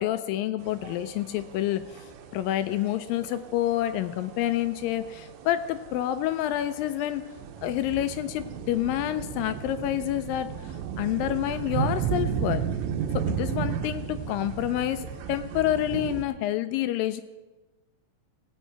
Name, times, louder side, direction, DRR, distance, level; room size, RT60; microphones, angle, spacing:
voice 1, 0.0-1.8 2.3-7.2 7.6-10.5 11.0-12.6 13.1-17.2, left 12 dB, 80° left, 11 dB, 2.1 m, -28 dB
sound 1, 0.6-16.2, right 8 dB, 85° right, 2.7 m, -34 dB
18.5 x 8.3 x 4.5 m, 1.2 s
omnidirectional pair, 4.3 m